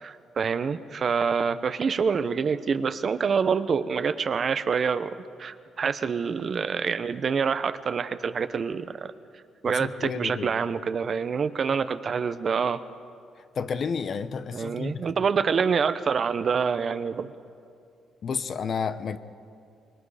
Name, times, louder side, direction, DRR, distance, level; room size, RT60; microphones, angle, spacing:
voice 1, 0.0-9.1 9.6-12.8 14.5-17.3, right 6 dB, 50° right, 0.8 m, -26 dB
voice 2, 9.8-10.5 13.6-15.0 18.2-19.2, left 6 dB, 55° left, 0.9 m, -31 dB
24.5 x 21.5 x 5.0 m
cardioid pair, 90°, 0 cm